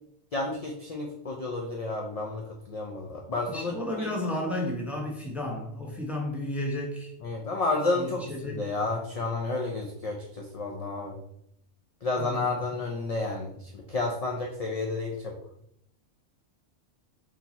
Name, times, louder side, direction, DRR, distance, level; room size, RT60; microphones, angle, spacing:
voice 1, 0.3-4.1 7.2-8.2 8.5-11.2 12.0-15.3, left 3 dB, 45° left, 0 dB, 0.5 m, -31 dB
voice 2, 3.5-7.1 7.9-8.7 12.2-12.6, left 1 dB, ahead, -1 dB, 0.7 m, -33 dB
4.4 x 2.9 x 4.0 m, 0.72 s
omnidirectional pair, 1.2 m